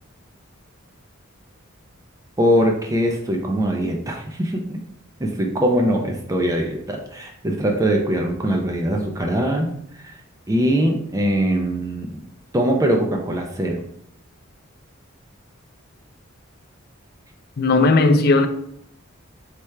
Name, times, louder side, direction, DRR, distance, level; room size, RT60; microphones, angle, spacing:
voice 1, 2.4-4.8 5.2-10.2 10.5-12.1 12.5-13.8, equal, 15° right, 0.4 m, -22 dB
voice 2, 17.6-18.5, left 3 dB, 50° left, 0.4 m, -16 dB
3.3 x 3.3 x 4.4 m
head